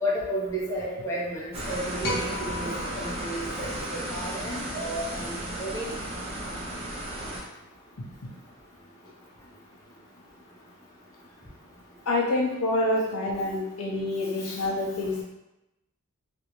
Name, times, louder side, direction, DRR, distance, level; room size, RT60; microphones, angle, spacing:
voice 1, 0.0-5.9 14.4-14.5, equal, 15° left, -8 dB, 0.8 m, -32 dB
sound 1, 1.5-7.4, right 1 dB, 25° right, 0.6 m, -34 dB
sound 2, 2.0-4.5, left 2 dB, 45° left, 0.8 m, -36 dB
voice 2, 12.1-15.1, left 2 dB, 80° left, -2 dB, 0.6 m, -27 dB
3.2 x 2.5 x 3.0 m, 0.94 s
head